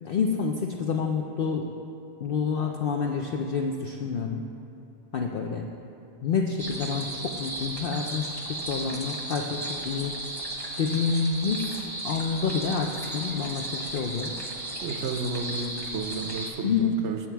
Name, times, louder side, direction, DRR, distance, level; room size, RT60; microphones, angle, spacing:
voice 1, 0.0-1.7 2.2-4.4 5.1-5.7 6.2-10.1 10.8-11.7 12.0-14.3 16.6-17.0, left 5 dB, 70° left, 2 dB, 0.5 m, -28 dB
sound 1, 6.6-16.5, right 2 dB, 20° right, 0.9 m, -35 dB
voice 2, 14.8-17.3, right 3 dB, 65° right, 5 dB, 0.8 m, -32 dB
8.9 x 7.2 x 4.5 m, 2.9 s
omnidirectional pair, 1.4 m